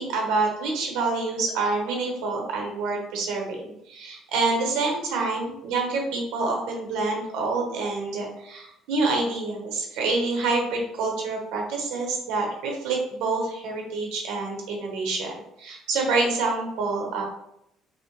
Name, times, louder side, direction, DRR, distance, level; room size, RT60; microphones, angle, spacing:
voice 1, 0.0-17.2, right 3 dB, 85° right, 1 dB, 1.1 m, -27 dB
5.3 x 2.2 x 3.2 m, 0.78 s
cardioid pair, 170°, 0 cm